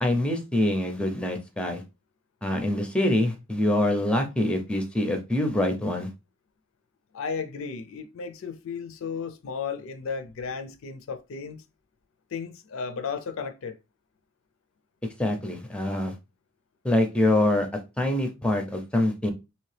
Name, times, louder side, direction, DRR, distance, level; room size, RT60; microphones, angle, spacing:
voice 1, 0.0-1.8 2.4-6.1 15.2-16.1 16.8-17.7 18.0-19.3, left 1 dB, 5° left, 0.5 m, -25 dB
voice 2, 7.1-11.6 12.3-13.8, left 5 dB, 60° left, 0.4 m, -34 dB
2.9 x 2.8 x 3.2 m
head